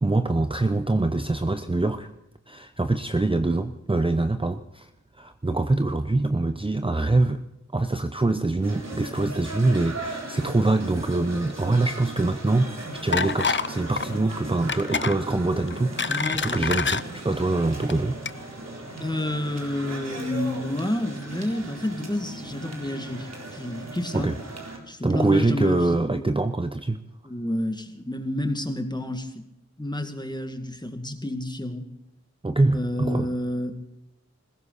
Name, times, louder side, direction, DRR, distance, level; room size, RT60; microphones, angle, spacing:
voice 1, 0.0-2.1 2.5-4.9 5.2-7.4 7.7-18.2 24.1-24.3 25.0-27.0 32.4-33.3, right 2 dB, 20° right, 9 dB, 0.7 m, -24 dB
sound 1, 8.6-24.8, right 2 dB, 60° right, 3.9 m, -37 dB
sound 2, 13.1-13.7 14.0-14.2 14.7-15.2 15.7-17.0 17.8-17.9 18.2-18.3, left 5 dB, 40° left, 0.6 m, -26 dB
voice 2, 16.1-16.8 19.0-24.3 24.9-26.3 27.2-29.5 29.8-31.9 32.7-33.8, left 1 dB, 15° left, 6 dB, 2.1 m, -30 dB
20.0 x 16.5 x 4.1 m, 0.89 s
wide cardioid pair, 80°, 29 cm